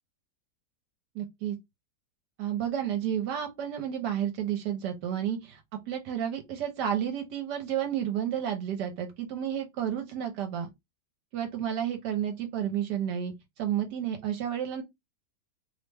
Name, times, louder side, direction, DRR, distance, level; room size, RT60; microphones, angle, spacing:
voice 1, 1.1-1.6 2.4-5.6 5.9-10.7 11.3-14.8, right 9 dB, 80° right, 1.2 m, -31 dB
3.0 x 2.1 x 3.3 m
omnidirectional pair, 1.9 m